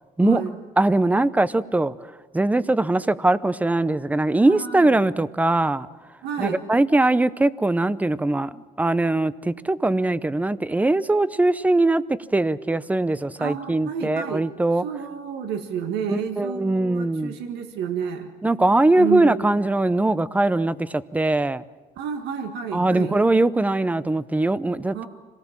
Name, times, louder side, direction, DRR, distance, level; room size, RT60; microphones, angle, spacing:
voice 1, 0.2-0.5 4.5-4.9 6.2-6.7 13.4-14.4 14.8-18.3 19.0-19.6 22.0-23.2 24.9-25.1, right 7 dB, 85° right, 5 dB, 1.8 m, -30 dB
voice 2, 0.8-1.9 2.3-5.9 6.4-14.8 16.1-17.4 18.4-21.6 22.7-25.1, right 2 dB, 10° right, 16 dB, 0.7 m, -21 dB
26.0 x 18.5 x 7.4 m, 1.3 s
cardioid pair, 110°, 17 cm